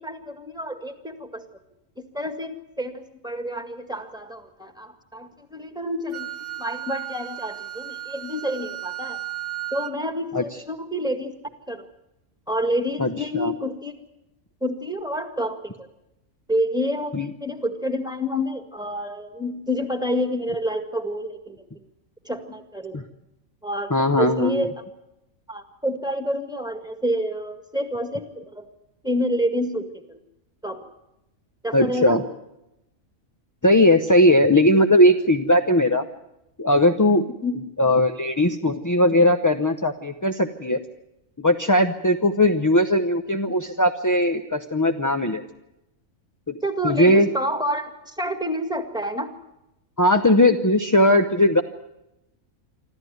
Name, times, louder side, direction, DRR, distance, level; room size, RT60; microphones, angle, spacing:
voice 1, 0.0-1.4 2.0-9.2 9.7-11.3 11.7-11.9 12.5-13.9 14.6-15.9 16.5-21.6 22.2-23.0 23.6-24.8 25.5-28.7 29.0-30.2 30.6-30.9 31.6-32.2 37.4-37.6 46.6-49.3, equal, 5° right, 8 dB, 1.9 m, -28 dB
Wind instrument woodwind instrument, 6.1-10.0, right 13 dB, 45° right, 1.3 m, -34 dB
voice 2, 13.0-13.5 17.1-17.3 22.9-23.0 23.9-24.7 31.7-32.2 33.6-36.0 36.6-37.3 37.8-40.8 41.4-45.4 46.5-46.6 46.8-47.3 50.0-51.6, left 1 dB, 20° left, 6 dB, 0.6 m, -19 dB
26.0 x 13.5 x 9.4 m, 0.89 s
omnidirectional pair, 1.4 m